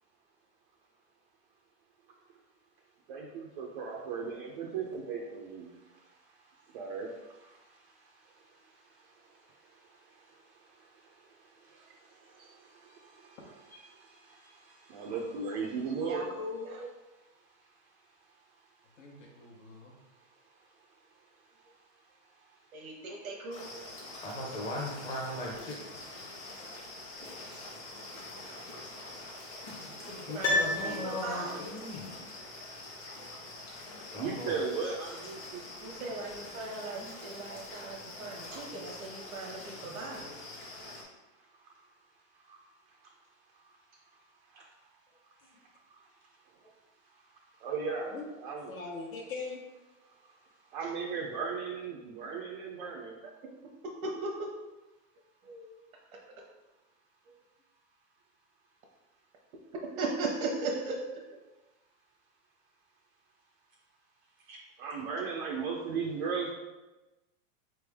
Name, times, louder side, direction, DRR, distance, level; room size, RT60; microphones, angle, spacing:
voice 1, 3.1-5.7 6.7-7.1 12.4-12.5 12.8-13.0 13.4-14.6 14.9-16.4 34.2-35.7 39.4-39.5 42.5-42.6 44.6-44.7 47.6-48.7 50.7-53.2 64.5-66.5, right 5 dB, 40° right, 0 dB, 0.4 m, -36 dB
voice 2, 16.0-16.9 22.7-23.7 30.1-31.7 35.8-40.4 54.2-54.3 55.4-55.7 60.0-60.9, right 3 dB, 90° right, -1 dB, 1.0 m, -38 dB
voice 3, 19.0-19.9 30.4-31.2 48.1-48.3 48.7-49.6, left 4 dB, 70° left, -1 dB, 1.0 m, -43 dB
sound 1, 23.5-41.0, left 2 dB, 30° left, 1.0 m, -45 dB
voice 4, 24.2-26.0 30.3-32.1 34.1-34.6 37.0-37.1, left 1 dB, 10° left, -4 dB, 0.7 m, -38 dB
Piano, 30.4-31.7 32.0-32.1, left 2 dB, 85° left, 1.4 m, -30 dB
4.3 x 3.4 x 3.4 m, 1.1 s
supercardioid pair, 160°, 41 cm